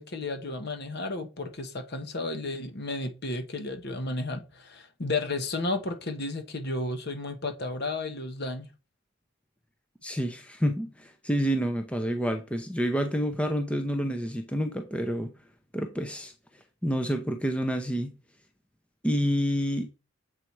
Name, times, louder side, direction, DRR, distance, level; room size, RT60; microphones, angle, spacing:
voice 1, 0.0-8.7, left 2 dB, 50° left, 1.2 m, -33 dB
voice 2, 10.0-15.3 15.7-16.3 16.8-18.1 19.0-19.9, equal, 5° left, 0.6 m, -28 dB
7.6 x 4.1 x 4.7 m
head